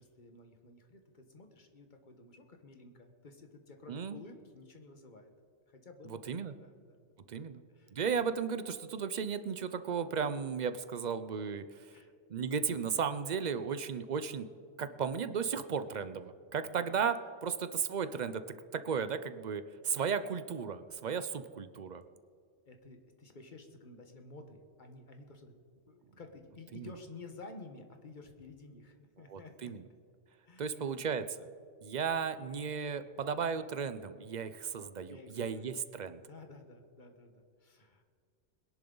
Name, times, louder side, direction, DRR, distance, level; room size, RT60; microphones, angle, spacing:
voice 1, 0.0-5.3 5.7-7.1 7.3-7.5 7.7-7.9 11.9-12.1 22.6-25.5 25.9-29.7 30.4-30.8 35.0-35.8 36.2-38.0, left 3 dB, 45° left, 5 dB, 1.4 m, -53 dB
voice 2, 3.9-4.2 6.0-6.5 7.3-7.6 7.9-11.7 12.3-14.5 14.8-18.4 18.7-22.0 26.7-26.9 29.3-29.8 30.6-31.5 31.8-36.2, right 6 dB, 50° right, 11 dB, 0.6 m, -35 dB
22.0 x 10.5 x 3.9 m, 2.2 s
omnidirectional pair, 1.2 m